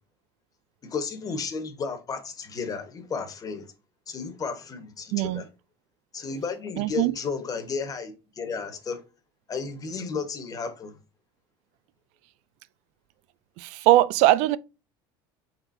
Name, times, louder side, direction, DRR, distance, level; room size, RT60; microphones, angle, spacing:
voice 1, 0.8-3.7 4.1-5.5 6.1-9.0 9.5-10.9, left 5 dB, 30° left, 1.3 m, -33 dB
voice 2, 5.1-5.4 6.8-7.1 13.6-14.6, right 15 dB, 70° right, 0.4 m, -21 dB
4.3 x 4.0 x 2.7 m
supercardioid pair, 115°, 12 cm